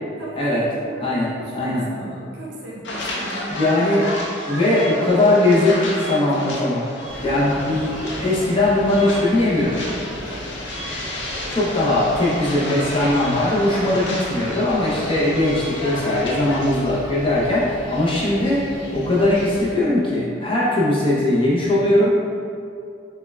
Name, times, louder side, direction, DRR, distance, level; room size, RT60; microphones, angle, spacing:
voice 1, 0.2-4.1 6.2-6.5 7.2-7.7 10.3-10.6, right 1 dB, 55° right, -5 dB, 0.7 m, -37 dB
voice 2, 1.0-1.8 3.6-4.1 4.5-6.9 7.2-9.8 11.5-18.7 18.9-22.1, left 1 dB, 25° left, -7 dB, 0.6 m, -20 dB
sound 1, 2.8-16.8, left 1 dB, 70° left, 0.6 m, -32 dB
sound 2, 7.0-19.7, equal, 85° left, 1.0 m, -36 dB
5.3 x 2.2 x 2.2 m, 2.4 s
head